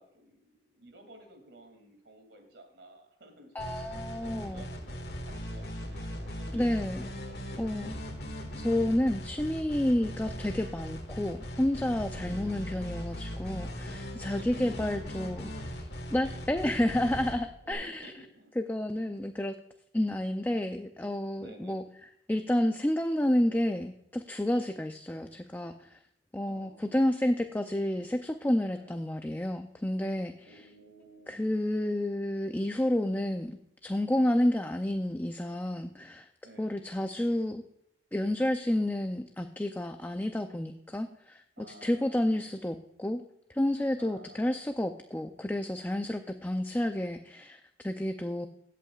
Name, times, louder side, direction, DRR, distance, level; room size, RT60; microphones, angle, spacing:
voice 1, 0.0-3.7 4.1-7.7 9.8-10.0 12.1-12.6 14.1-15.4 16.2-16.5 17.6-18.5 21.4-21.8 24.5-24.7 26.4-27.0 28.7-28.9 30.4-31.5 34.1-34.3 36.4-36.7 41.6-42.7 44.0-44.7, right 1 dB, 90° right, 5 dB, 2.5 m, -53 dB
voice 2, 3.5-4.7 6.5-7.1 7.6-7.9 8.5-18.1 18.6-19.5 19.9-26.0 26.3-30.6 31.3-36.3 36.6-37.6 38.1-43.2 43.5-48.5, left 1 dB, 10° left, 6 dB, 0.4 m, -30 dB
sound 1, 3.6-17.7, equal, 65° left, 1.8 m, -39 dB
16.5 x 8.4 x 2.4 m, 0.79 s
head